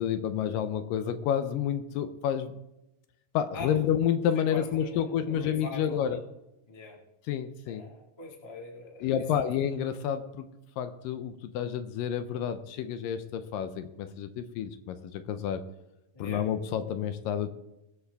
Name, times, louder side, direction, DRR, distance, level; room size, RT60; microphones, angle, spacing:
voice 1, 0.0-2.6 3.3-6.2 7.3-7.8 9.0-10.5 10.8-15.6 16.2-17.5, left 9 dB, 80° left, 9 dB, 2.2 m, -29 dB
voice 2, 4.3-6.2 6.7-7.0 7.6-9.4 16.1-16.4, left 3 dB, 20° left, -1 dB, 0.7 m, -43 dB
20.0 x 7.2 x 3.4 m, 0.91 s
omnidirectional pair, 4.2 m